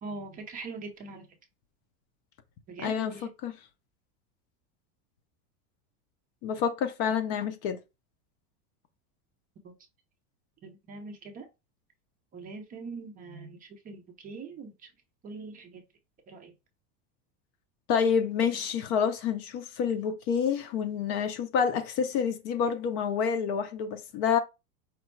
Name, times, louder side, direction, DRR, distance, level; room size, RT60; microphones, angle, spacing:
voice 1, 0.0-1.3 2.7-3.3 9.6-9.7 10.6-11.5 12.3-14.9 15.2-15.8 16.3-16.5 18.5-18.6, right 3 dB, 20° right, 0.6 m, -42 dB
voice 2, 2.8-3.1 3.4-3.5 6.4-7.8 17.9-24.4, left 7 dB, 40° left, 0.6 m, -28 dB
5.2 x 2.3 x 4.4 m
supercardioid pair, 160°, 42 cm